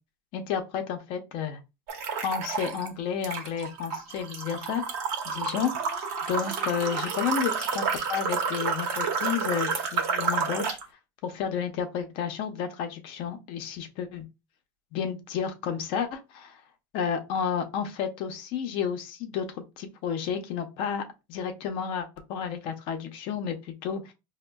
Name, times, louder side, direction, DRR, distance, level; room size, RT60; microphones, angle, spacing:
voice 1, 0.3-1.6 2.2-4.8 5.2-5.7 6.3-10.8 11.2-14.3 14.9-16.6 16.9-21.0 21.3-24.1, left 7 dB, 55° left, 0.6 m, -31 dB
sound 1, 1.9-2.9 3.2-10.8, right 5 dB, 65° right, 0.8 m, -30 dB
5.0 x 2.1 x 2.2 m
supercardioid pair, 150°, 11 cm